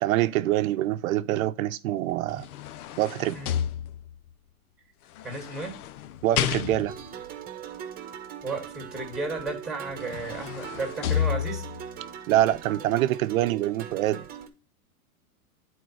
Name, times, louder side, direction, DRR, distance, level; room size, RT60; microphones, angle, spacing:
voice 1, 0.0-2.4 3.0-3.3 6.2-6.9 12.3-14.2, right 14 dB, 65° right, 0.7 m, -25 dB
sound 1, 2.1-4.3 5.2-7.1 9.4-9.5 9.9-11.9 12.4-12.6, left 10 dB, 75° left, 0.8 m, -31 dB
voice 2, 5.2-5.8 8.4-11.7, right 3 dB, ahead, 2.3 m, -34 dB
sound 2, 6.9-14.5, right 9 dB, 20° right, 1.3 m, -40 dB
9.5 x 4.3 x 4.8 m
supercardioid pair, 150°, 44 cm